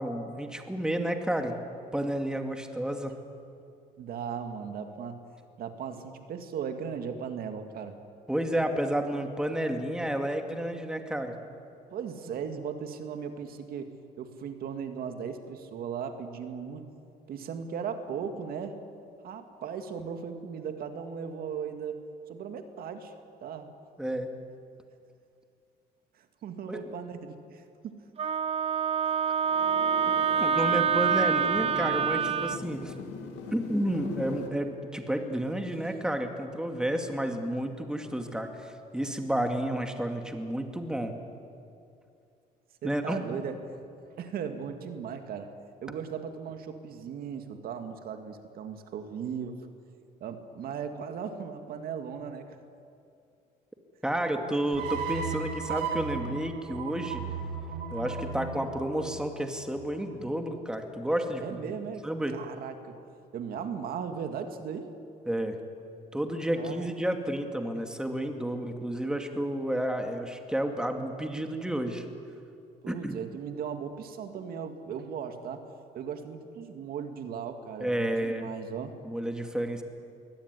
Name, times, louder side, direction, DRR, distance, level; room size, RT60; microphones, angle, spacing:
voice 1, 0.0-1.6 1.9-3.2 8.3-11.4 24.0-24.3 26.7-26.9 30.4-32.9 33.5-41.1 42.8-43.2 54.0-57.2 57.9-61.6 62.0-62.4 65.3-65.6 66.1-72.0 72.9-73.2 77.8-78.5 79.0-79.8, right 1 dB, 5° right, 5 dB, 2.3 m, -31 dB
voice 2, 4.0-5.2 5.6-8.0 11.9-16.8 17.3-18.8 19.2-22.0 22.3-23.1 23.4-23.7 26.2-28.4 29.0-29.1 30.3-30.4 42.8-43.8 44.2-45.5 45.8-49.6 50.2-52.5 61.4-63.0 63.3-64.9 66.6-66.9 72.8-75.7 75.9-78.9, right 7 dB, 60° right, 7 dB, 2.2 m, -37 dB
Wind instrument woodwind instrument, 28.2-32.6, right 7 dB, 35° right, 0.8 m, -26 dB
sound 1, 29.4-34.5, left 5 dB, 90° left, 3.1 m, -40 dB
sound 2, 54.7-59.9, right 5 dB, 75° right, 4.5 m, -36 dB
23.0 x 17.5 x 9.8 m, 2.5 s
cardioid pair, 110°, 17 cm